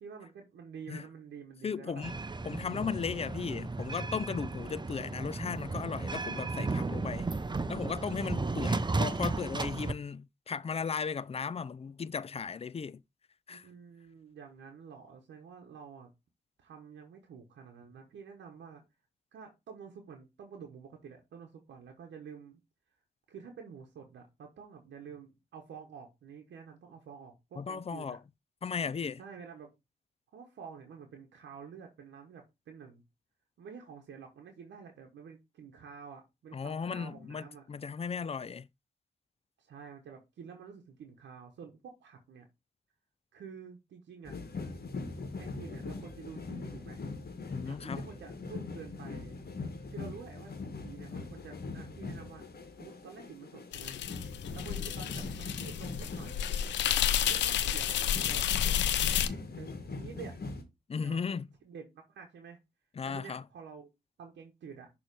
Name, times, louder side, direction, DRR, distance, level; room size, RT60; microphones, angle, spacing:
voice 1, 0.0-2.0 13.5-16.1 16.6-18.8 19.3-22.6 23.3-28.2 29.2-29.7 30.3-33.0 33.6-37.6 39.6-42.5 43.3-44.7 45.4-47.0 47.6-49.4 49.9-50.5 50.8-52.4 52.7-54.0 54.5-56.5 57.2-58.5 59.5-59.7 60.0-60.3 61.0-61.2 61.6-62.6 63.0-63.9 64.2-64.9, right 6 dB, 85° right, 0.9 m, -49 dB
voice 2, 1.6-2.2 2.5-7.3 7.7-13.0 13.5-13.7 27.6-28.2 28.6-29.2 36.5-38.7 47.5-48.0 60.9-61.5 63.0-63.4, left 6 dB, 35° left, 0.4 m, -36 dB
sound 1, 2.0-9.9, right 3 dB, 25° right, 0.6 m, -34 dB
sound 2, 44.3-60.6, left 3 dB, 60° left, 1.4 m, -42 dB
sound 3, 53.7-59.3, left 10 dB, 90° left, 0.5 m, -30 dB
6.5 x 3.1 x 4.6 m
supercardioid pair, 40°, 18 cm